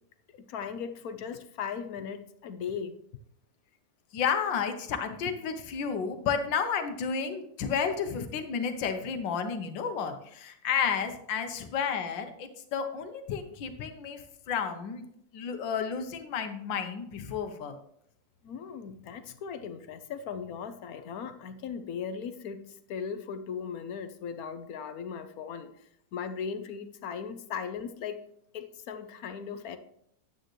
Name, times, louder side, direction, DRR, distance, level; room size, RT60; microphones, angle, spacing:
voice 1, 0.3-2.9 18.4-22.6 22.9-28.2 28.5-29.8, left 6 dB, 60° left, 10 dB, 1.1 m, -38 dB
voice 2, 4.1-15.0 15.3-17.8, left 6 dB, 85° left, 7 dB, 1.7 m, -31 dB
10.0 x 9.0 x 3.1 m, 0.72 s
omnidirectional pair, 2.0 m